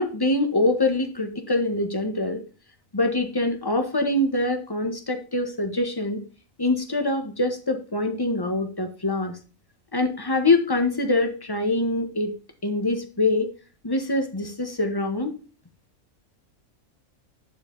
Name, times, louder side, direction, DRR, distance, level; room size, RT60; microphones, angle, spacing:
voice 1, 0.0-2.4 2.9-6.2 6.6-9.4 9.9-12.3 12.6-13.5 13.8-15.4, left 2 dB, 15° left, 6 dB, 1.3 m, -24 dB
11.0 x 5.0 x 3.9 m, 0.36 s
omnidirectional pair, 1.5 m